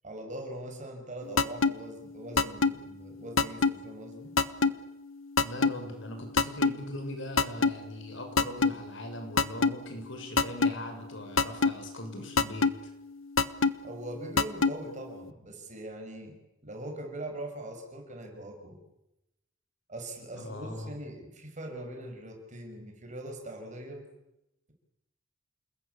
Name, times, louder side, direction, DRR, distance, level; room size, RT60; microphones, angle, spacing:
voice 1, 0.0-4.3 13.8-16.3 16.6-18.8 19.9-24.0, right 1 dB, 40° right, 3 dB, 6.8 m, -41 dB
sound 1, 1.4-1.7 2.4-2.7 3.4-3.7 4.4-4.7 5.4-5.7 6.4-6.7 7.4-7.7 8.4-8.7 9.4-9.7 10.4-10.7 11.4-11.7 12.4-12.7 13.4-13.7 14.4-14.7, left 4 dB, 90° left, 1.2 m, -22 dB
voice 2, 5.4-12.7 20.3-21.0, left 1 dB, 70° left, 5 dB, 6.8 m, -40 dB
29.0 x 20.5 x 8.6 m, 0.88 s
head